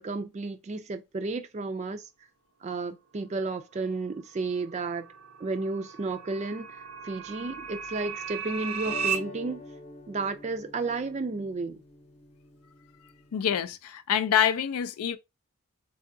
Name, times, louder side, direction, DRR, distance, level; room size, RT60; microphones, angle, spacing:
voice 1, 0.0-2.1 2.6-5.1 5.4-9.6 10.1-11.8, right 3 dB, 30° right, 0.3 m, -32 dB
sound 1, 4.8-9.2, right 7 dB, 80° right, 0.5 m, -35 dB
sound 2, 8.8-13.7, left 3 dB, 25° left, 0.6 m, -46 dB
voice 2, 13.3-15.2, left 9 dB, 80° left, 0.4 m, -26 dB
3.7 x 2.3 x 2.6 m
head